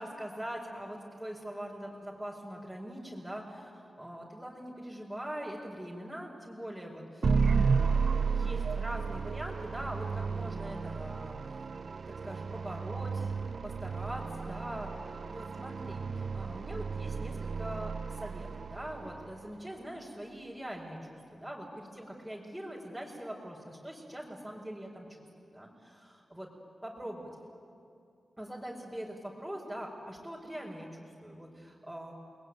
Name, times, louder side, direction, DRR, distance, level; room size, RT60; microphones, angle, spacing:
voice 1, 0.0-8.0 8.3-11.4 12.2-13.3 13.6-25.9 26.3-26.5 26.8-27.3 28.4-32.1, equal, 5° right, -5 dB, 4.8 m, -42 dB
sound 1, 7.2-19.4, right 5 dB, 60° right, 0.6 m, -33 dB
29.5 x 21.0 x 9.4 m, 2.6 s
cardioid pair, 70°, 0 cm